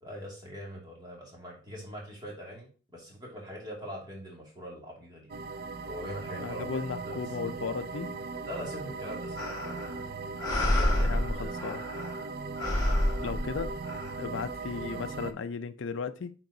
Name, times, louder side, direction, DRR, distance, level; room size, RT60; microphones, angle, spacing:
voice 1, 0.0-5.3 5.9-6.6 8.4-9.9 10.5-12.1, equal, 20° right, 2.3 m, -43 dB
sound 1, 5.3-15.3, right 3 dB, 45° right, 0.5 m, -38 dB
voice 2, 6.4-8.1 11.0-11.8 13.2-13.8 14.2-16.3, left 5 dB, 60° left, 0.5 m, -35 dB
sound 2, 9.4-10.0 10.4-12.2 12.6-14.1, left 1 dB, 20° left, 2.1 m, -29 dB
8.8 x 4.6 x 2.7 m
head